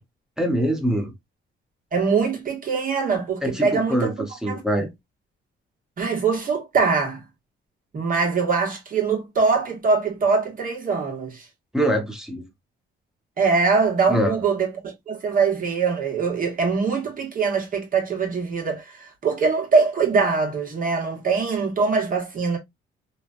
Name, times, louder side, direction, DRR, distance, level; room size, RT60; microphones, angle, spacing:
voice 1, 0.4-1.1 3.4-4.9 11.7-12.4 14.1-14.4, equal, 5° right, 0.9 m, -24 dB
voice 2, 1.9-4.1 4.5-4.6 6.0-7.2 7.9-11.5 13.4-22.6, right 4 dB, 45° right, 1.3 m, -23 dB
3.1 x 2.3 x 2.5 m
cardioid pair, 90°, 20 cm